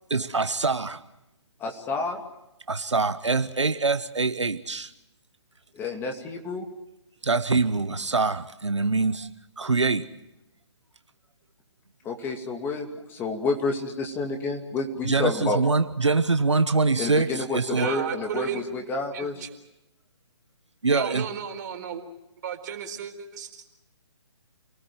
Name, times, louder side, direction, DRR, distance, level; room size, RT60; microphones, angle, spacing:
voice 1, 0.1-1.0 2.7-4.9 7.2-9.3 9.6-10.1 15.0-17.9 20.8-21.3, right 4 dB, 85° right, 10 dB, 1.2 m, -24 dB
voice 2, 1.6-2.2 5.7-6.6 12.0-15.6 17.0-19.3, left 3 dB, 15° left, 3 dB, 2.7 m, -29 dB
voice 3, 17.7-18.6 19.1-19.5 20.9-22.0 22.4-23.6, right 8 dB, 40° right, 4 dB, 4.3 m, -33 dB
29.5 x 19.0 x 7.9 m, 0.90 s
figure-of-eight pair, 140°, 15 cm